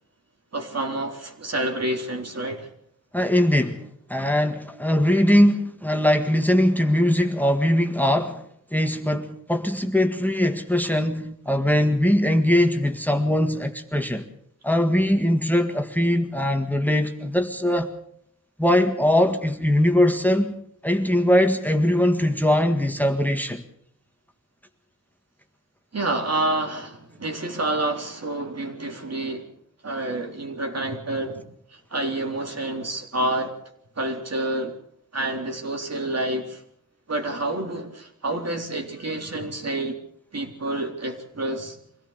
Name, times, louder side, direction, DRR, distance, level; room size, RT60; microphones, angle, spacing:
voice 1, 0.5-2.7 25.9-29.5 29.8-31.4 31.7-33.6 34.0-34.7 35.1-36.6 37.1-40.0 40.3-41.8, right 2 dB, 55° right, 4.0 m, -28 dB
voice 2, 3.1-8.4 8.7-14.3 14.6-17.9 18.6-20.5 20.8-23.6, left 1 dB, 5° left, 1.7 m, -21 dB
25.0 x 17.0 x 6.6 m
wide cardioid pair, 90°, 31 cm